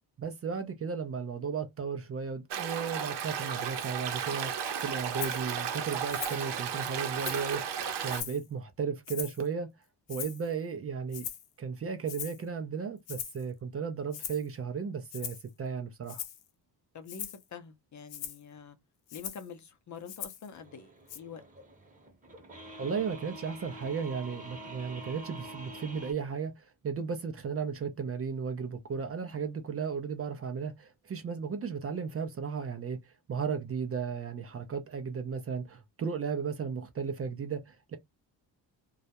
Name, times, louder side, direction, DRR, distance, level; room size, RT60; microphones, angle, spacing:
voice 1, 0.2-4.5 4.8-9.7 10.1-11.3 11.6-16.2 22.8-33.0 33.3-38.0, right 6 dB, 35° right, 0.5 m, -35 dB
Stream, 2.5-8.2, right 8 dB, 65° right, 0.8 m, -34 dB
Rattle (instrument), 5.2-5.4 6.1-6.5 6.9-7.5 8.1-8.5 9.1-9.5 10.1-10.5 11.1-11.5 12.1-12.4 13.1-13.4 14.1-14.5 15.1-15.5 16.1-16.4 17.1-17.4 18.1-18.4 19.1-19.5 20.1-20.5 21.1-21.2, left 10 dB, 80° left, 0.7 m, -40 dB
voice 2, 16.9-18.8 19.1-21.4, left 6 dB, 40° left, 0.6 m, -46 dB
sound 1, 20.5-26.1, right 1 dB, 20° right, 0.9 m, -47 dB
2.3 x 2.0 x 2.8 m
cardioid pair, 95°, 44 cm